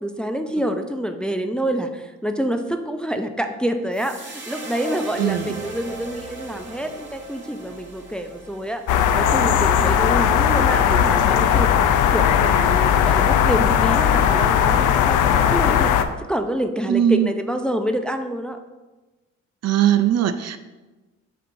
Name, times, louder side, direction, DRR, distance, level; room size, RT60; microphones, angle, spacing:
voice 1, 0.0-8.8 9.1-11.7 12.1-18.6, equal, 5° left, 6 dB, 0.5 m, -27 dB
sound 1, 3.9-10.3, right 2 dB, 35° right, 1.6 m, -38 dB
voice 2, 5.2-5.6 16.9-17.3 19.6-20.6, right 10 dB, 55° right, 10 dB, 0.5 m, -20 dB
sound 2, 8.9-16.0, left 8 dB, 85° left, 0.5 m, -18 dB
8.5 x 5.3 x 2.6 m, 1.2 s
cardioid pair, 90°, 30 cm